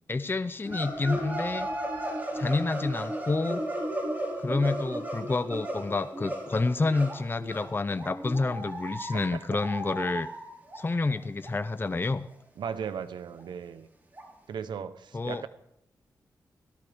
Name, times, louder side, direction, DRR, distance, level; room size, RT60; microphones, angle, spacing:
voice 1, 0.1-1.7 2.3-3.6 4.4-10.3 10.7-12.3 15.1-15.5, left 3 dB, 30° left, 13 dB, 0.6 m, -29 dB
sound 1, 0.6-10.8 11.1-11.2 11.4-11.5 11.8-11.9 12.3-12.4 12.8-12.9 13.4-13.5 14.2-14.3, right 1 dB, 25° right, 4.0 m, -35 dB
voice 2, 12.6-13.9 14.5-15.5, right 7 dB, 80° right, 12 dB, 0.8 m, -37 dB
17.5 x 13.0 x 3.4 m, 0.80 s
cardioid pair, 55°, 8 cm